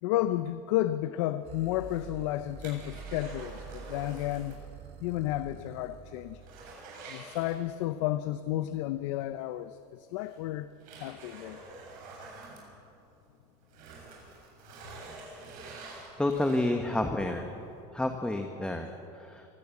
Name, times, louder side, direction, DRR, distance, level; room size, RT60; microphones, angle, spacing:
voice 1, 0.0-4.6 5.0-6.4 7.1-10.7 11.0-11.6, left 14 dB, 85° left, 12 dB, 0.7 m, -32 dB
sound 1, 1.4-6.7, right 6 dB, 45° right, 3.2 m, -47 dB
sound 2, 1.7-4.7 4.9-5.0 5.5-5.6 6.0-8.0 9.4-9.5 10.2-13.3 13.6-17.0 17.5-17.6, right 3 dB, 65° right, 7.0 m, -47 dB
voice 2, 15.8-17.6 17.9-19.5, left 1 dB, 5° left, 4 dB, 1.3 m, -30 dB
24.0 x 16.0 x 7.2 m, 2.7 s
supercardioid pair, 125°, 16 cm